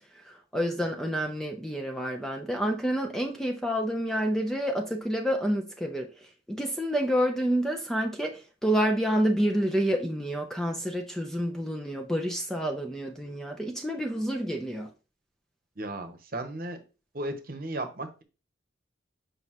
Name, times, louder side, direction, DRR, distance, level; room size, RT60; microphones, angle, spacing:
voice 1, 0.1-14.9, equal, 5° left, 0.6 m, -29 dB
voice 2, 15.8-16.8 17.1-18.2, right 1 dB, 45° right, 1.0 m, -35 dB
7.8 x 5.3 x 3.0 m
head